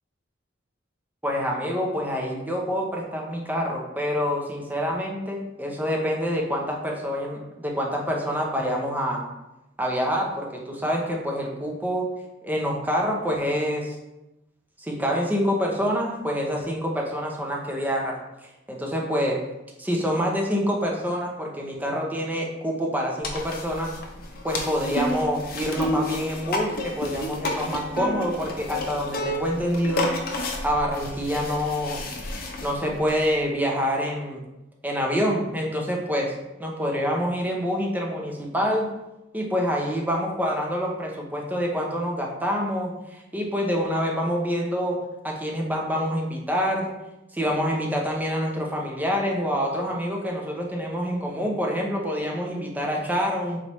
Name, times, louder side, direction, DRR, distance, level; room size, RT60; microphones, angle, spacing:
voice 1, 1.2-9.2 9.8-12.1 12.4-14.0 14.8-19.4 19.8-23.9 24.4-30.1 30.6-32.0 32.6-34.4 34.8-36.3 36.6-38.9 39.3-45.0 45.2-46.9 47.3-53.6, equal, 10° right, -1 dB, 0.6 m, -26 dB
sound 1, 23.2-33.4, left 1 dB, 50° left, 0.6 m, -31 dB
4.0 x 3.3 x 3.1 m, 0.95 s
head